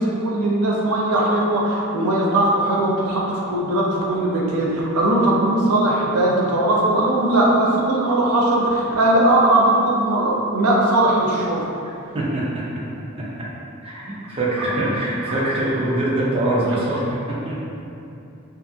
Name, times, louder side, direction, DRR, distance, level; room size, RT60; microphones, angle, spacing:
voice 1, 0.0-11.7 14.6-14.8, right 1 dB, 85° right, -3 dB, 0.5 m, -19 dB
voice 2, 12.1-12.9 13.1-13.5 13.8-17.6, right 1 dB, 25° right, -7 dB, 0.4 m, -24 dB
2.6 x 2.4 x 2.6 m, 2.7 s
head